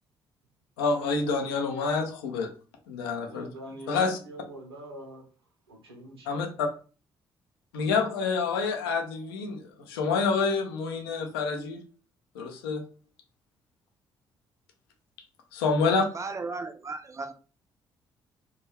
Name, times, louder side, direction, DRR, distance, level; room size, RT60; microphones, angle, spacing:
voice 1, 0.8-2.5 2.9-3.4 3.9-4.2 6.3-6.7 7.7-11.8 12.4-12.8 15.5-16.0, left 4 dB, 75° left, 0.4 m, -27 dB
voice 2, 3.3-5.3 5.7-6.5, right 1 dB, 85° right, 0.6 m, -44 dB
voice 3, 16.1-17.3, right 3 dB, 25° right, 0.3 m, -35 dB
2.2 x 2.2 x 3.2 m
figure-of-eight pair, 40°, 12 cm